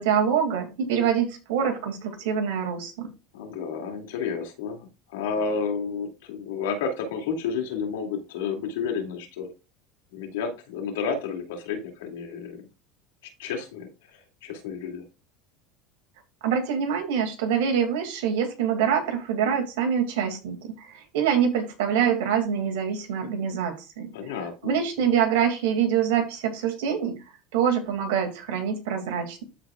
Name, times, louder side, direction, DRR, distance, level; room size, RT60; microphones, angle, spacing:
voice 1, 0.0-3.1 16.4-24.1 24.6-27.2 27.5-29.4, right 8 dB, 80° right, 4 dB, 2.3 m, -25 dB
voice 2, 3.3-9.5 10.1-12.7 13.4-15.0 24.1-24.8, left 5 dB, 85° left, 3 dB, 2.4 m, -31 dB
13.5 x 4.8 x 2.4 m, 0.29 s
hypercardioid pair, 90°, 0 cm